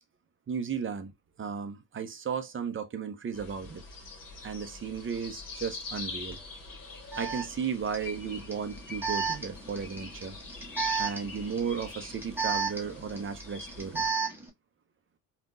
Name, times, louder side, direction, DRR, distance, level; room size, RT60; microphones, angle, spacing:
voice 1, 0.5-1.1 1.4-3.8 4.4-6.4 7.1-10.4 11.0-14.1, right 6 dB, 25° right, 0.7 m, -35 dB
sound 1, 3.3-14.1, left 3 dB, 45° left, 1.4 m, -44 dB
Alarm, 6.3-6.4 7.1-14.5, right 5 dB, 5° right, 1.2 m, -34 dB
3.5 x 2.5 x 2.6 m
hypercardioid pair, 60°, 47 cm